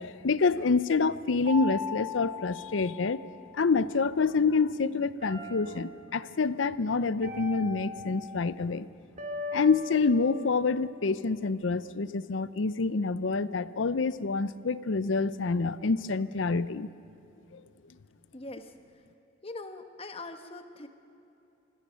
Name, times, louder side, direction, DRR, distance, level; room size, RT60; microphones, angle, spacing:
voice 1, 0.0-3.2 3.5-8.9 9.5-16.9 17.5-17.6, left 4 dB, 70° left, 16 dB, 0.6 m, -27 dB
sound 1, 1.4-3.8 5.2-6.2 7.2-8.5 9.2-11.5, left 3 dB, 40° right, 2.4 m, -40 dB
voice 2, 18.3-19.0 19.4-20.9, left 2 dB, 30° left, 8 dB, 1.1 m, -42 dB
25.0 x 17.0 x 6.3 m, 2.8 s
head